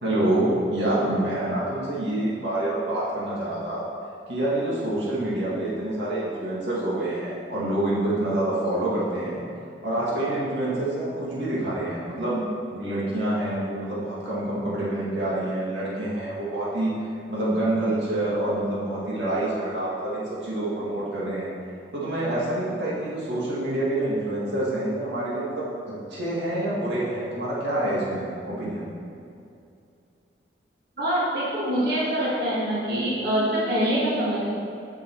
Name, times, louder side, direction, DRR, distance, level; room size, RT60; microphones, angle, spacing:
voice 1, 0.0-3.8 4.3-9.4 9.8-21.5 21.9-28.9, right 1 dB, 80° right, -7 dB, 2.1 m, -27 dB
voice 2, 31.0-34.5, equal, 55° right, -8 dB, 2.1 m, -24 dB
7.5 x 7.0 x 4.7 m, 2.5 s
head